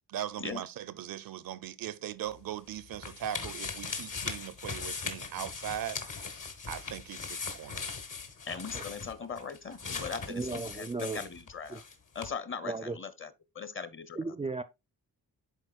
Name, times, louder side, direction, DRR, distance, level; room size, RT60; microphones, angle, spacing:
voice 1, 0.1-6.0 6.7-7.9, right 11 dB, 70° right, 0.5 m, -39 dB
sound 1, 2.3-11.9 12.2-12.3, left 5 dB, 60° left, 1.4 m, -40 dB
voice 2, 8.4-11.8 12.1-14.2, left 5 dB, 35° left, 0.8 m, -40 dB
voice 3, 10.3-11.3 11.7-11.8 12.6-13.0 14.2-14.6, right 3 dB, 15° right, 0.4 m, -35 dB
11.0 x 4.2 x 2.4 m
cardioid pair, 75°, 36 cm